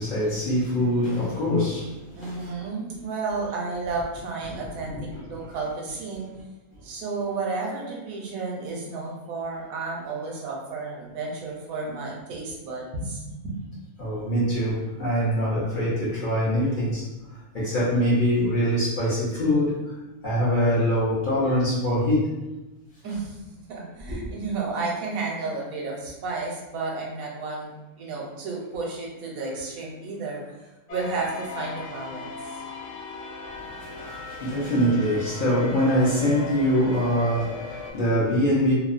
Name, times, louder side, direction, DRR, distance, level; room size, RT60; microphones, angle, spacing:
voice 1, 0.0-2.5 4.5-4.6 4.9-5.2 11.8-11.9 14.0-17.1 17.5-19.9 20.2-22.4 24.1-24.2 33.5-38.7, equal, 55° left, -8 dB, 0.6 m, -24 dB
voice 2, 2.2-5.0 5.2-6.3 6.8-13.6 23.0-23.4 23.7-27.7 28.0-32.7, right 3 dB, 80° right, -2 dB, 1.1 m, -32 dB
sound 1, 30.9-37.9, left 3 dB, 90° left, 1.1 m, -38 dB
2.7 x 2.0 x 2.4 m, 1.0 s
omnidirectional pair, 1.5 m